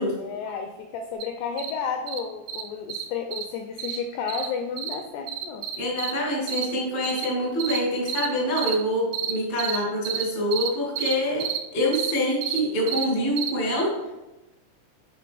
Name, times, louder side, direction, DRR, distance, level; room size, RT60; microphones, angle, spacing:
voice 1, 0.0-5.7, left 6 dB, 85° left, 5 dB, 2.3 m, -32 dB
sound 1, 1.2-1.3 1.6-1.7 2.1-2.2 2.5-2.6 2.9-3.0 3.3-3.4 3.8-4.0 4.3-4.5 4.8-5.0 5.3-6.1 6.5-6.7 7.0-7.3 7.6-7.8 8.1-8.3 8.6-8.8 9.1-9.3 9.6-9.8 10.1-10.3 10.5-10.7 11.0-11.1 11.4-11.6 11.9-12.1 12.4-12.6 12.9-13.1 13.4-13.5, right 11 dB, 80° right, 2.6 m, -29 dB
voice 2, 5.8-11.4 11.7-13.9, equal, 65° left, -3 dB, 0.6 m, -25 dB
9.2 x 4.3 x 3.4 m, 1.0 s
omnidirectional pair, 5.2 m